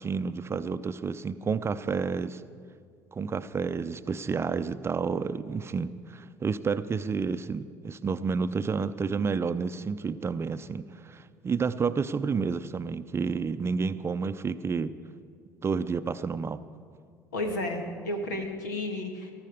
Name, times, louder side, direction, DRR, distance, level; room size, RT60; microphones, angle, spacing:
voice 1, 0.0-2.4 3.1-15.0 15.6-16.6, right 5 dB, 25° right, 12 dB, 0.6 m, -30 dB
voice 2, 17.3-19.3, left 1 dB, 75° left, 4 dB, 1.9 m, -32 dB
19.0 x 14.0 x 5.1 m, 2.1 s
figure-of-eight pair, 60°, 10 cm